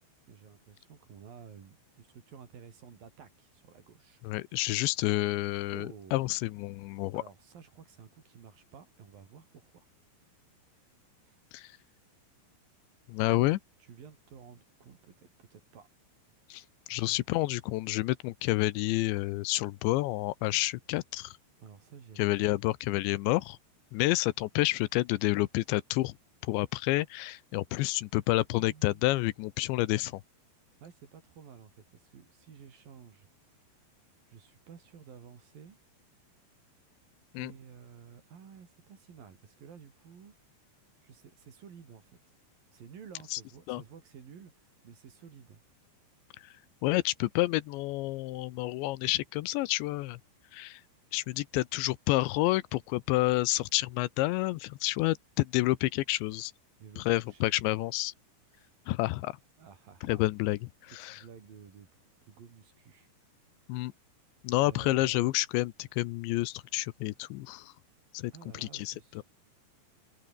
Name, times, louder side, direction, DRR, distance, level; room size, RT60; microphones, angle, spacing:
voice 1, 0.3-4.2 5.7-6.2 7.1-9.8 11.2-11.4 13.2-13.4 13.8-15.9 17.0-17.2 21.6-22.5 28.5-29.0 30.8-33.3 34.3-35.8 37.3-40.3 41.0-42.2 42.7-45.6 56.8-57.5 58.5-58.8 59.6-60.3 60.9-63.1 64.6-65.3 68.3-69.2, right 7 dB, 55° right, 4.8 m, -52 dB
voice 2, 4.2-7.2 11.5-11.7 13.1-13.6 16.5-16.6 16.9-21.3 22.2-23.6 23.9-26.1 26.4-30.2 37.3-37.5 43.3-43.4 43.7-43.8 46.8-50.2 50.5-50.8 51.1-56.5 57.0-58.1 58.9-59.3 60.0-60.6 60.9-61.2 63.7-63.9 64.4-67.7 68.1-68.3 68.7-68.9, left 19 dB, 85° left, 3.0 m, -29 dB
omnidirectional pair, 5.2 m